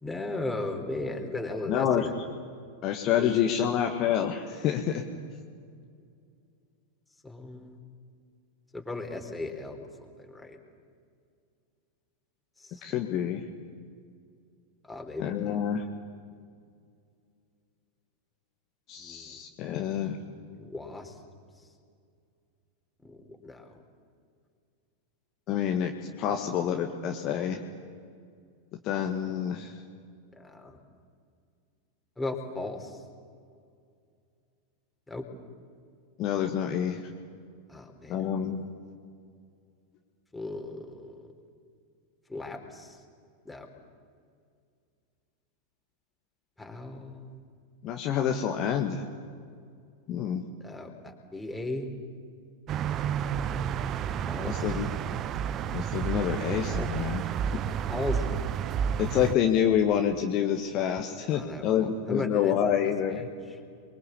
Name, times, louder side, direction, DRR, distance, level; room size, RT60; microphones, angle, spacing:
voice 1, 0.0-2.1 3.2-3.3 7.2-7.8 8.7-10.6 12.6-12.8 14.9-15.5 19.0-19.4 20.6-21.2 23.0-23.7 26.2-26.3 30.4-30.8 32.2-33.0 35.1-35.2 37.7-38.2 40.3-41.3 42.3-43.0 43.5-43.7 46.6-47.4 50.6-51.9 54.1-54.7 56.7-56.9 57.9-58.3 61.3-62.7 63.1-63.3, left 2 dB, 5° left, 2 dB, 4.1 m, -37 dB
voice 2, 1.7-2.1 2.8-5.0 12.8-13.4 15.2-15.8 18.9-20.2 25.5-27.6 28.8-29.7 36.2-37.0 38.1-38.6 47.8-49.0 50.1-50.4 54.4-54.9 55.7-57.2 59.0-63.3, left 9 dB, 35° left, 3 dB, 1.7 m, -27 dB
sound 1, 52.7-59.4, right 8 dB, 30° right, 0.9 m, -30 dB
29.5 x 23.0 x 8.5 m, 2.3 s
figure-of-eight pair, 90°, 0 cm